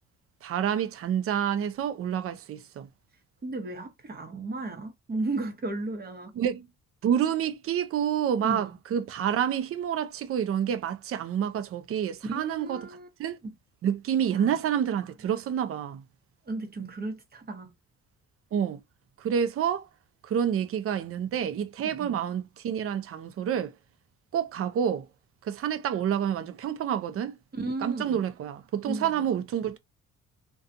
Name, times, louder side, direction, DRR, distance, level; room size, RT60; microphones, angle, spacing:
voice 1, 0.4-2.9 6.4-6.6 7.0-12.8 13.2-13.4 13.8-16.0 18.5-18.8 19.2-19.9 20.2-23.7 24.3-25.0 25.4-27.3 27.8-29.8, right 9 dB, 50° right, 0.5 m, -28 dB
voice 2, 3.4-6.3 8.4-8.7 12.3-13.1 13.4-13.5 14.3-14.6 16.5-17.7 21.8-22.2 27.5-28.2 28.9-29.3, right 2 dB, 30° right, 1.0 m, -35 dB
2.4 x 2.3 x 2.6 m
cardioid pair, 90°, 30 cm